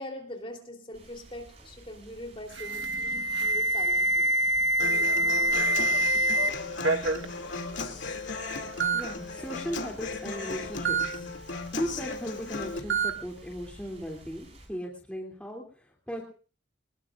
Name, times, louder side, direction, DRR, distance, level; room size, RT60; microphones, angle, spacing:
voice 1, 0.0-4.3, left 1 dB, 30° left, 5 dB, 3.5 m, -42 dB
sound 1, 0.9-14.7, right 1 dB, 35° right, 6.9 m, -52 dB
Alarm, 2.5-6.5 6.8-7.3 8.1-8.2 8.8-9.0 10.9-11.1 12.9-13.1, right 2 dB, 75° right, 1.5 m, -25 dB
Human voice / Acoustic guitar, 4.8-12.8, left 3 dB, 80° left, 2.6 m, -36 dB
voice 2, 8.9-16.2, equal, 5° left, -1 dB, 3.0 m, -37 dB
24.5 x 21.0 x 2.5 m, 0.42 s
head